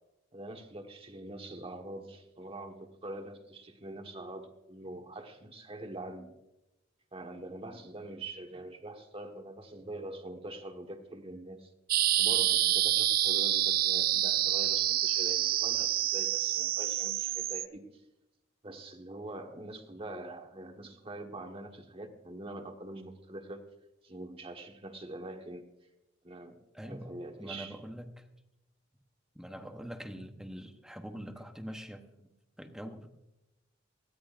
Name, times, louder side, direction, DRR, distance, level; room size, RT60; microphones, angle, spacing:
voice 1, 0.3-6.3 7.1-11.7 12.2-18.0 18.6-23.7 24.0-25.7 26.2-27.8, right 1 dB, 30° right, 4 dB, 1.5 m, -44 dB
sound 1, 11.9-17.7, right 13 dB, 50° right, 0.4 m, -27 dB
voice 2, 26.7-27.1 27.4-28.3 29.3-32.3 32.6-33.3, equal, 5° right, 6 dB, 1.0 m, -44 dB
19.0 x 16.0 x 2.6 m, 0.92 s
head